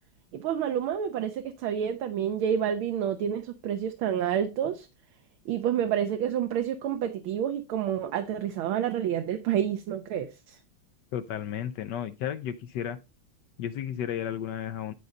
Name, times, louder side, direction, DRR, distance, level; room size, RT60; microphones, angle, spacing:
voice 1, 0.3-4.9 5.5-10.6, right 9 dB, 75° right, 1.6 m, -29 dB
voice 2, 11.1-13.0 13.6-14.9, left 10 dB, 75° left, 1.0 m, -33 dB
11.0 x 3.9 x 5.2 m
omnidirectional pair, 2.3 m